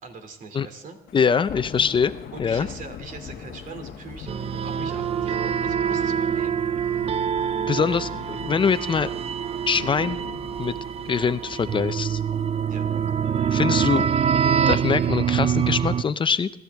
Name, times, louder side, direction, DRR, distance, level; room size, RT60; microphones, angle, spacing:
voice 1, 0.0-1.0 2.3-4.3 4.6-6.6 12.7-13.0, right 4 dB, 50° right, 7 dB, 2.6 m, -41 dB
Thunder / Rain, 1.1-15.1, left 10 dB, 65° left, 1.0 m, -43 dB
voice 2, 1.1-2.7 7.7-9.1 9.7-10.2 10.6-10.8 11.1-12.2 13.5-14.1 14.4-16.5, left 6 dB, 30° left, 13 dB, 0.5 m, -23 dB
sound 1, 1.5-14.3, right 1 dB, 10° right, 1.1 m, -48 dB
sound 2, 4.3-16.0, right 8 dB, 35° right, 0.4 m, -25 dB
24.5 x 13.5 x 3.5 m, 0.93 s
cardioid pair, 110°, 17 cm